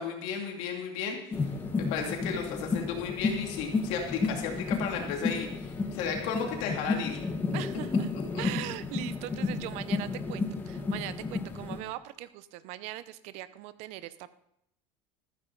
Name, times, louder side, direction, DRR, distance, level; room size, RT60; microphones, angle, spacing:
voice 1, 0.0-1.4 1.8-7.2 8.1-8.4, left 6 dB, 60° left, 1 dB, 2.6 m, -34 dB
sound 1, 1.3-11.8, left 4 dB, 15° left, 1.2 m, -32 dB
voice 2, 7.5-8.1 8.4-14.3, right 14 dB, 55° right, 14 dB, 0.7 m, -40 dB
14.5 x 13.0 x 4.0 m, 0.77 s
cardioid pair, 160°, 13 cm